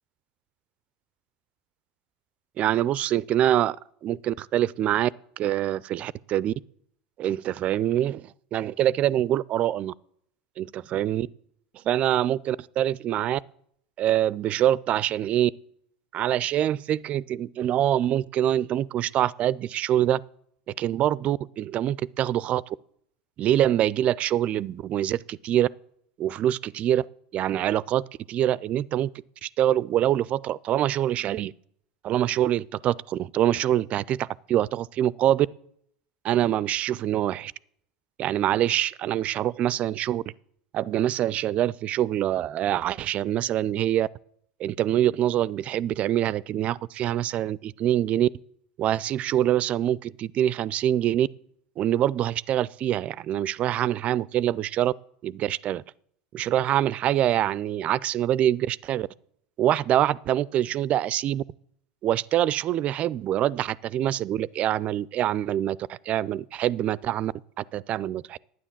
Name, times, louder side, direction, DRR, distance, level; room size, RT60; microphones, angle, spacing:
voice 1, 2.6-3.8 4.0-5.1 5.4-6.5 7.2-9.9 10.6-11.3 11.9-13.4 14.0-15.5 16.1-20.2 20.8-22.8 23.4-25.7 26.2-27.1 27.3-29.1 29.4-31.5 32.0-35.5 36.2-37.5 38.2-40.2 40.7-44.1 44.6-48.3 48.8-51.3 51.8-54.9 55.2-55.8 56.3-59.1 59.6-61.4 62.0-68.4, right 12 dB, 40° right, 0.4 m, -25 dB
10.5 x 9.5 x 7.3 m
hypercardioid pair, 95°, 3 cm